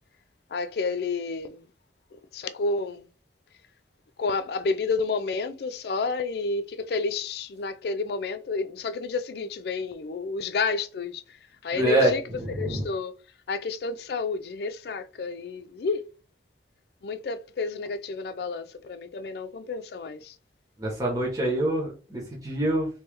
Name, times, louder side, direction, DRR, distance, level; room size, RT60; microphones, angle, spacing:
voice 1, 0.5-1.6 2.3-3.1 4.2-11.2 11.6-12.2 12.5-13.2 13.5-16.0 17.0-20.4, left 4 dB, 60° left, 0.3 m, -30 dB
voice 2, 11.7-12.1 12.4-12.8 20.8-22.9, right 1 dB, 20° right, 1.1 m, -25 dB
3.1 x 3.0 x 3.4 m
head